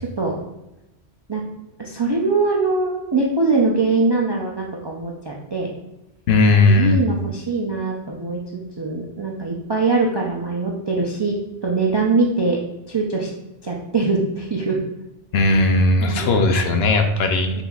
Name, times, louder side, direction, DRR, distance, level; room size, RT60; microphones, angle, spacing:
voice 1, 1.8-5.7 6.5-11.3 11.6-12.6 12.9-13.3 13.6-14.8 16.0-16.6 17.6-17.7, right 3 dB, 45° right, -2 dB, 0.3 m, -22 dB
voice 2, 6.3-7.0 15.3-17.6, left 2 dB, 65° left, 5 dB, 0.8 m, -17 dB
5.7 x 4.0 x 2.3 m, 0.96 s
omnidirectional pair, 1.2 m